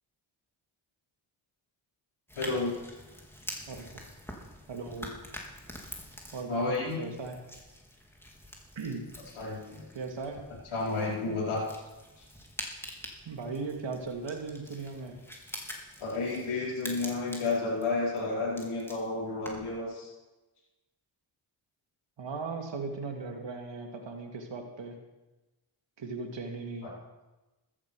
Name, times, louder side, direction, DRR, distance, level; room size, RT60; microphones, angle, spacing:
sound 1, 2.3-19.8, left 1 dB, 5° left, 3.7 m, -46 dB
voice 1, 2.4-2.7 6.5-6.9 9.4-9.8 10.7-11.6 16.0-20.1 26.8-26.9, left 3 dB, 75° left, -6 dB, 4.7 m, -31 dB
voice 2, 3.7-4.0 4.7-5.2 6.3-7.4 8.8-9.1 9.9-10.5 13.3-15.2 17.3-17.4 22.2-25.0 26.0-26.9, right 4 dB, 60° right, 3 dB, 2.4 m, -38 dB
13.5 x 10.0 x 6.2 m, 1.1 s
supercardioid pair, 40°, 50 cm